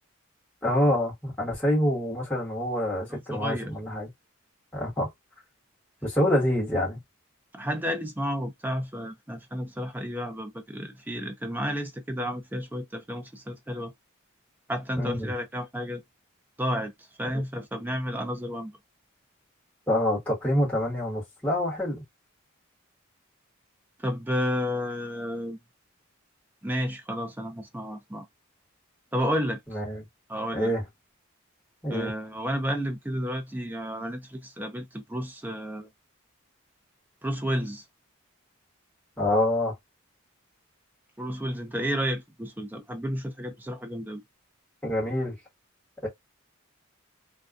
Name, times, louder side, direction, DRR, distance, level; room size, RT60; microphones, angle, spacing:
voice 1, 0.6-4.1 4.7-5.1 6.0-7.0 15.0-15.3 17.3-17.4 19.9-22.0 29.7-30.0 30.5-30.8 31.8-32.1 39.2-39.7 44.8-45.3 46.0-46.1, left 1 dB, 5° left, 1.3 m, -26 dB
voice 2, 3.1-3.7 7.5-13.9 14.7-16.0 16.6-18.8 24.0-25.6 26.6-28.3 29.1-29.6 30.3-30.7 31.9-35.9 37.2-37.8 41.2-44.2, equal, 10° right, 0.4 m, -31 dB
2.4 x 2.3 x 2.3 m
head